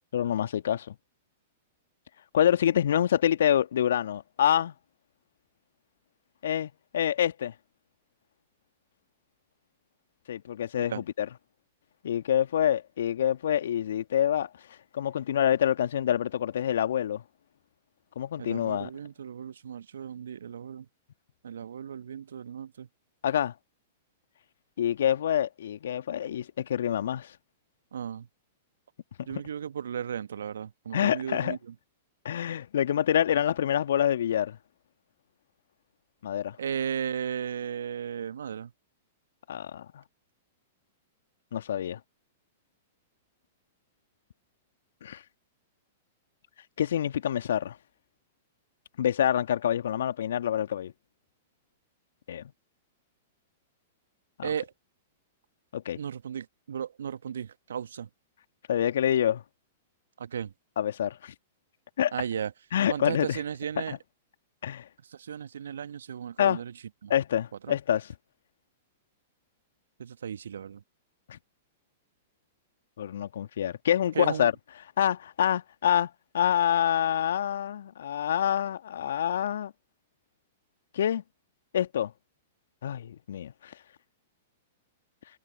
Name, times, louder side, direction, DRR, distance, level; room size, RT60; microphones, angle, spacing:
voice 1, 0.1-1.0 2.3-4.7 6.4-7.5 10.3-11.3 12.0-17.2 18.2-18.9 23.2-23.5 24.8-27.4 30.9-31.6 32.2-34.6 36.2-36.6 39.5-40.0 41.5-42.0 45.0-45.2 46.8-47.8 49.0-50.9 52.3-52.4 54.4-54.5 55.7-56.0 58.7-59.4 60.8-61.3 62.0-62.1 62.7-63.4 63.8-64.0 64.6-64.9 66.4-66.6 67.1-68.1 71.3-71.4 73.0-74.5 75.0-79.7 80.9-81.2 81.7-82.1 82.8-83.7, left 10 dB, 65° left, 1.9 m, -27 dB
voice 2, 18.4-20.8 21.4-22.9 27.9-28.3 29.3-31.7 36.6-38.7 54.4-54.7 56.0-58.1 60.2-60.5 62.1-62.5 62.9-63.9 65.1-66.7 67.0-67.1 67.6-67.8 70.0-70.8 74.1-74.5, right 8 dB, 70° right, 1.4 m, -35 dB
figure-of-eight pair, 105°, 0 cm